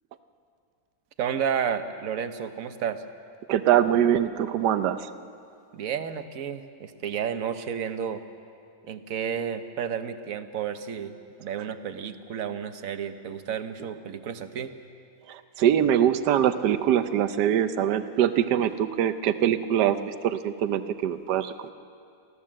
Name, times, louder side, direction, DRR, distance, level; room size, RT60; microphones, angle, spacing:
voice 1, 1.2-3.0 5.7-8.2 8.8-11.1 11.4-14.7, right 8 dB, 60° right, 9 dB, 1.3 m, -31 dB
voice 2, 3.5-5.1 15.3-21.7, right 10 dB, 80° right, 11 dB, 1.3 m, -23 dB
24.0 x 15.5 x 7.5 m, 2.4 s
omnidirectional pair, 1.8 m